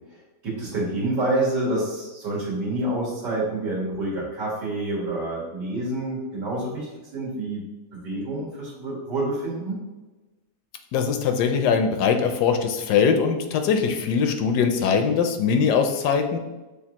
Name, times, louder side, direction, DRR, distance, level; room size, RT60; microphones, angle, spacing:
voice 1, 0.4-6.9 7.1-7.6 7.9-9.8, right 2 dB, 80° right, -6 dB, 2.2 m, -27 dB
voice 2, 10.9-16.4, left 6 dB, 80° left, 6 dB, 1.1 m, -21 dB
6.8 x 2.6 x 2.9 m, 1.1 s
omnidirectional pair, 1.8 m